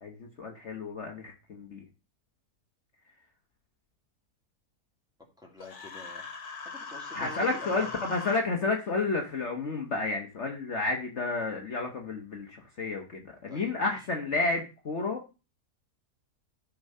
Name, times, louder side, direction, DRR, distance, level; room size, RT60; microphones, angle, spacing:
voice 1, 0.0-1.9 7.1-15.2, left 3 dB, 50° left, 2 dB, 1.4 m, -31 dB
voice 2, 5.4-6.3 6.6-7.9 13.5-13.7, left 1 dB, ahead, 0 dB, 2.3 m, -46 dB
Human voice, 5.6-8.4, left 4 dB, 70° left, 2.0 m, -40 dB
12.5 x 4.8 x 5.4 m, 0.31 s
omnidirectional pair, 1.7 m